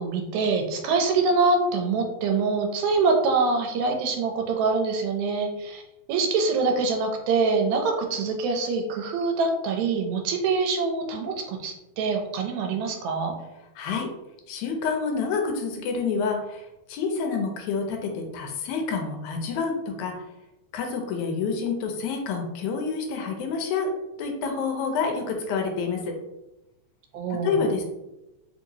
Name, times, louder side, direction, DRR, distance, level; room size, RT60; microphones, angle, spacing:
voice 1, 0.0-5.8 6.1-13.4 27.1-27.6, right 4 dB, 80° right, 3 dB, 2.0 m, -25 dB
voice 2, 13.8-14.1 14.5-16.6 16.9-20.1 20.7-23.9 24.2-26.2 27.4-27.8, left 5 dB, 80° left, 3 dB, 2.0 m, -28 dB
4.6 x 2.8 x 2.7 m, 0.94 s
omnidirectional pair, 3.4 m